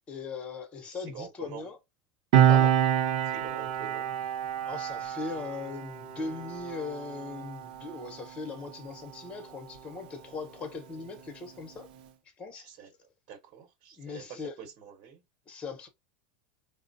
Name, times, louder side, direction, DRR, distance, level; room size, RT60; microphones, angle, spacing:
voice 1, 0.1-1.8 2.5-2.8 4.6-11.9 12.4-12.7 13.9-14.6 15.5-15.9, left 4 dB, 25° left, 0.9 m, -39 dB
voice 2, 1.1-1.7 3.3-4.1 12.5-12.9 13.3-14.3 14.6-15.2, right 7 dB, 50° right, 1.1 m, -46 dB
Piano, 2.3-9.3 9.6-9.8, right 10 dB, 70° right, 0.7 m, -27 dB
4.2 x 2.0 x 2.7 m
supercardioid pair, 145°, 5 cm